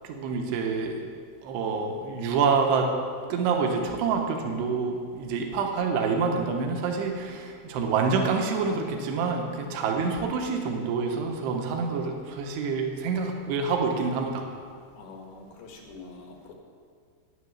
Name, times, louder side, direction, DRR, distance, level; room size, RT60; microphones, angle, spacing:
voice 1, 0.0-1.1 1.4-2.9 3.3-14.5, right 5 dB, 80° right, 2 dB, 3.2 m, -27 dB
voice 2, 15.0-16.5, left 4 dB, 70° left, 1 dB, 3.2 m, -45 dB
10.5 x 9.5 x 7.4 m, 2.1 s
omnidirectional pair, 4.9 m